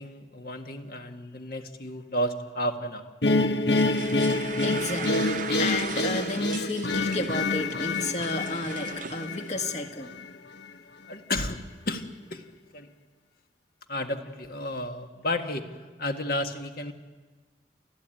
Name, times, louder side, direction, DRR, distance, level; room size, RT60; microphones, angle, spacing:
voice 1, 0.0-3.1 11.1-12.4 12.7-12.9 13.9-15.7 16.0-16.9, left 1 dB, 55° left, 6 dB, 1.7 m, -32 dB
sound 1, 3.2-10.3, left 2 dB, 80° left, 1.1 m, -27 dB
sound 2, 3.7-9.6, right 8 dB, 50° right, 0.8 m, -39 dB
voice 2, 4.6-10.1, left 2 dB, 40° left, 6 dB, 1.7 m, -32 dB
29.5 x 13.5 x 9.1 m, 1.3 s
head